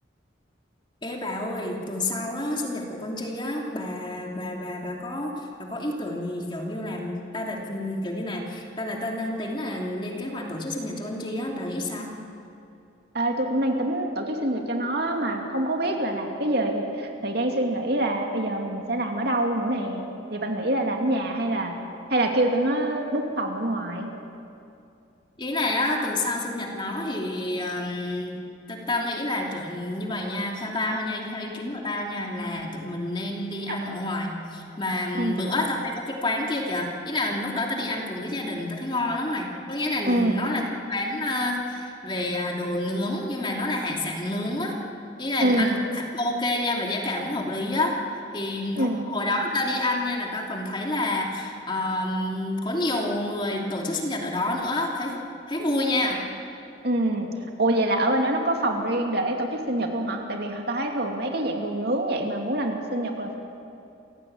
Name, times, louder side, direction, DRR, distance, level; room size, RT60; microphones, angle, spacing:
voice 1, 1.0-12.1 25.4-28.4 28.7-44.8 45.2-48.0 48.3-55.2 55.5-56.2, left 1 dB, 25° left, 0 dB, 2.8 m, -29 dB
voice 2, 13.1-21.7 22.1-24.1 33.7-33.8 35.1-35.5 40.1-40.5 45.4-45.8 48.8-49.1 56.8-57.3 57.6-63.4, right 1 dB, 55° right, 2 dB, 2.7 m, -25 dB
29.0 x 16.5 x 8.9 m, 2.6 s
head